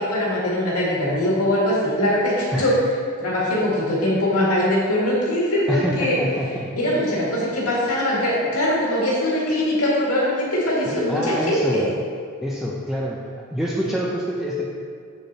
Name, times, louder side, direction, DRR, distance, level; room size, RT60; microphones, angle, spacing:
voice 1, 0.0-2.7 3.2-6.2 6.8-11.9, left 1 dB, 80° left, -6 dB, 2.0 m, -22 dB
voice 2, 5.7-7.0 10.9-11.9 12.4-13.2 13.5-14.7, equal, ahead, -5 dB, 0.6 m, -26 dB
7.3 x 7.2 x 4.1 m, 2.2 s
head